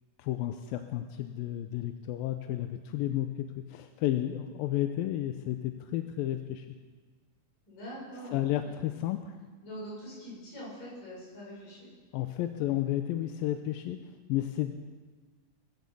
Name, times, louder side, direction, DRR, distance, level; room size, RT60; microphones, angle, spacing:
voice 1, 0.2-6.7 8.3-9.3 12.1-14.7, left 13 dB, 80° left, 7 dB, 2.4 m, -32 dB
voice 2, 7.6-9.0 9.6-11.9, equal, 65° left, -6 dB, 7.8 m, -44 dB
22.5 x 8.2 x 7.1 m, 1.4 s
omnidirectional pair, 4.3 m